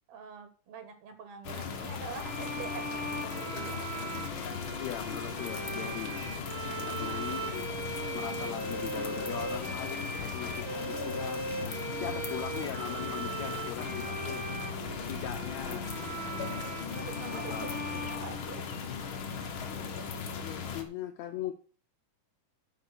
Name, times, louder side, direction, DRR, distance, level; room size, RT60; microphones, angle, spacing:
voice 1, 0.1-3.9 6.6-7.3 11.6-12.3 14.7-15.0 16.8-18.7, right 5 dB, 60° right, 9 dB, 2.4 m, -46 dB
sound 1, 1.4-20.8, left 6 dB, 55° left, 1.5 m, -38 dB
sound 2, 2.1-19.0, right 3 dB, 30° right, 1.2 m, -39 dB
voice 2, 4.8-6.3 6.9-7.7 8.1-14.4 15.1-16.2 17.3-17.7 20.4-21.5, left 11 dB, 75° left, 7 dB, 1.7 m, -40 dB
9.8 x 5.1 x 6.4 m, 0.39 s
omnidirectional pair, 3.8 m